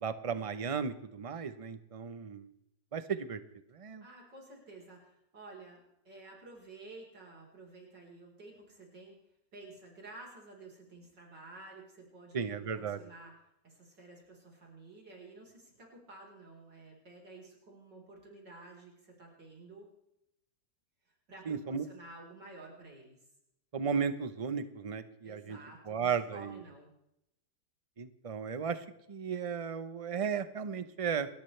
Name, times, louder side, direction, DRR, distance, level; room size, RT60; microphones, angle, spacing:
voice 1, 0.0-2.5 2.9-3.4 3.7-4.0 12.3-13.0 21.5-21.9 23.7-25.6 25.9-26.6 28.0-31.3, right 6 dB, 25° right, 11 dB, 0.7 m, -35 dB
voice 2, 4.0-9.2 9.5-13.3 13.6-19.9 21.0-23.2 25.2-26.9, right 2 dB, 75° right, -1 dB, 5.0 m, -52 dB
29.5 x 13.5 x 3.4 m, 0.82 s
omnidirectional pair, 1.9 m